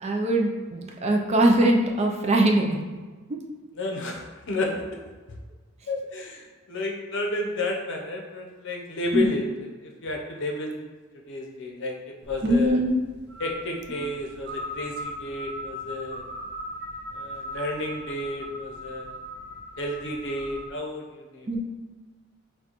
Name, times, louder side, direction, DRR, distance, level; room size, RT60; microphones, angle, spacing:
voice 1, 0.0-2.8 9.1-9.3 12.4-12.9 21.5-21.6, right 1 dB, 30° right, 1 dB, 0.4 m, -21 dB
voice 2, 3.8-4.9 5.9-10.8 11.3-12.8 13.4-16.2 17.1-19.2 19.8-21.6, left 2 dB, 60° left, 1 dB, 0.7 m, -31 dB
sound 1, 12.2-20.7, equal, 55° right, 0.7 m, -39 dB
6.1 x 2.2 x 2.9 m, 1.3 s
head